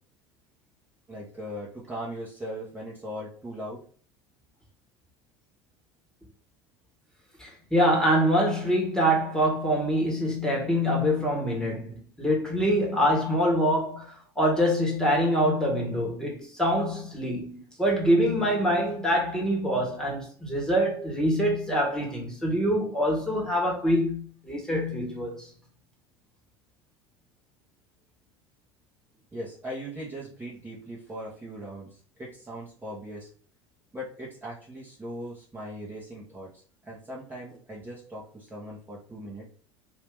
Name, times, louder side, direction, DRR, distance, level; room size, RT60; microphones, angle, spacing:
voice 1, 1.1-3.8 29.3-33.3 33.9-36.5 36.8-39.5, equal, 15° right, 1.4 m, -39 dB
voice 2, 7.4-25.4, equal, 5° left, 1.6 m, -25 dB
2.9 x 2.8 x 3.6 m
hypercardioid pair, 75°, 14 cm